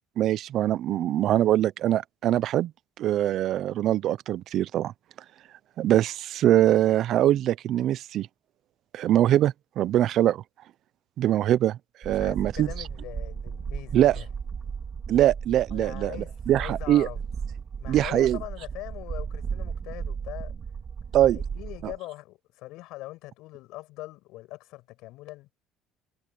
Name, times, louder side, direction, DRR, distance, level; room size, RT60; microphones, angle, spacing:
voice 1, 0.2-2.7 3.0-4.9 5.8-8.3 8.9-10.4 11.2-12.7 13.9-14.2 15.1-17.1 17.9-18.4 21.1-21.4 21.8-21.9, right 12 dB, 60° right, 0.6 m, -23 dB
voice 2, 12.0-14.3 15.7-16.3 16.6-17.2 17.8-20.5 21.3-25.5, left 18 dB, 80° left, 6.3 m, -41 dB
sound 1, 12.0-22.0, right 6 dB, 35° right, 2.7 m, -35 dB
cardioid pair, 100°, 0 cm